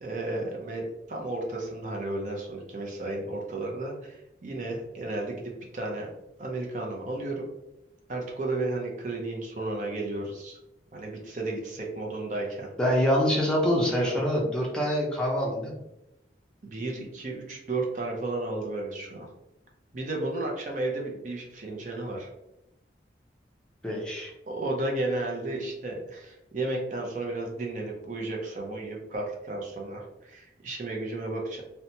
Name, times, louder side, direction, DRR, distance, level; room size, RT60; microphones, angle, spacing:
voice 1, 0.0-6.1 6.4-7.4 8.1-10.6 10.9-12.7 13.9-14.2 16.6-19.3 19.9-22.3 24.5-31.6, right 2 dB, 45° right, 0 dB, 0.5 m, -33 dB
voice 2, 12.8-15.8 23.8-24.3, equal, 5° left, -3 dB, 0.5 m, -25 dB
2.8 x 2.1 x 2.7 m, 0.89 s
head